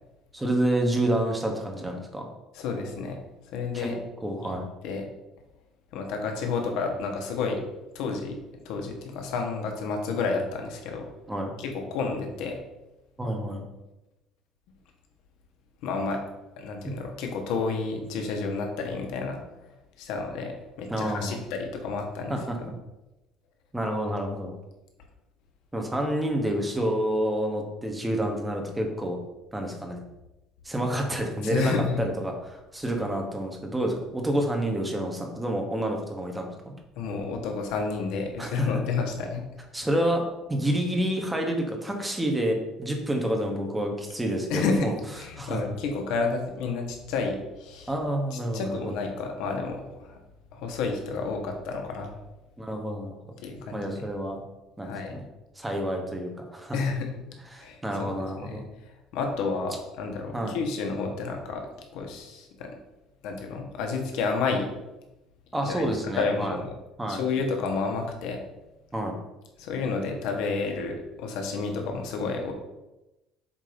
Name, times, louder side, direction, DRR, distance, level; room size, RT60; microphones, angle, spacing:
voice 1, 0.3-2.3 3.7-3.9 4.2-4.7 11.3-11.5 13.2-13.6 16.8-16.9 20.9-21.4 22.3-22.6 23.7-24.5 25.7-29.2 29.5-30.0 30.6-36.7 38.4-38.7 39.7-40.2 40.5-44.9 45.4-45.6 47.9-48.9 52.6-53.2 53.7-54.4 54.8-55.2 55.6-56.8 57.5-58.7 60.3-60.6 65.5-66.6 67.0-67.2 68.9-69.1, right 1 dB, 5° right, 2 dB, 0.8 m, -28 dB
voice 2, 2.5-3.2 3.5-4.0 4.4-4.5 4.8-5.0 5.9-7.6 7.9-8.4 8.6-11.1 11.6-12.6 15.8-16.2 16.6-19.4 20.0-22.4 31.4-32.0 37.0-39.4 44.5-44.9 45.2-47.9 48.3-50.2 50.5-52.1 53.4-54.0 54.8-55.2 56.7-57.1 57.6-58.1 58.4-58.7 59.1-61.6 61.9-62.7 63.2-64.7 65.6-66.7 67.1-68.4 69.6-72.5, left 4 dB, 70° left, 3 dB, 1.2 m, -30 dB
7.4 x 2.7 x 5.0 m, 0.99 s
cardioid pair, 170°, 0 cm